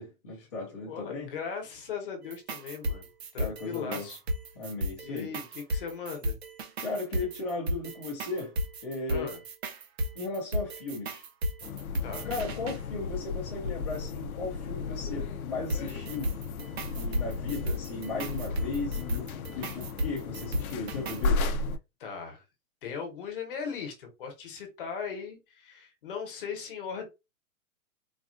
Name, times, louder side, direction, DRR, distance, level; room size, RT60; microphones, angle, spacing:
voice 1, 0.0-1.3 3.4-4.1 4.5-5.3 6.8-8.5 8.8-9.3 10.1-11.2 12.2-16.3 16.9-21.5, left 3 dB, 20° left, 0.6 m, -36 dB
voice 2, 0.5-4.2 5.0-6.4 9.1-9.4 12.0-12.3 19.1-19.8 22.0-22.4 22.8-27.1, left 6 dB, 35° left, 1.0 m, -39 dB
sound 1, 2.2-12.8 15.7-21.3, equal, 45° right, 0.6 m, -34 dB
sound 2, 11.6-21.8, left 4 dB, 70° left, 0.6 m, -34 dB
4.0 x 2.4 x 2.5 m
hypercardioid pair, 175°, 44 cm